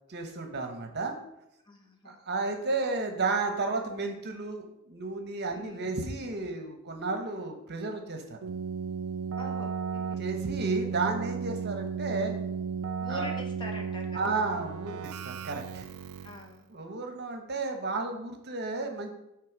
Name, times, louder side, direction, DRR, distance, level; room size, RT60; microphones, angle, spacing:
voice 1, 0.1-1.1 2.0-8.4 10.2-12.3 13.1-13.3 14.1-15.9 16.7-19.1, right 3 dB, 50° right, 5 dB, 1.0 m, -32 dB
voice 2, 1.7-2.2 5.5-5.9 9.4-10.2 13.0-14.4 16.2-16.6, equal, 20° left, 2 dB, 1.1 m, -44 dB
Keyboard (musical), 8.4-16.5, right 6 dB, 90° right, 0.4 m, -34 dB
8.5 x 3.5 x 6.0 m, 0.86 s
head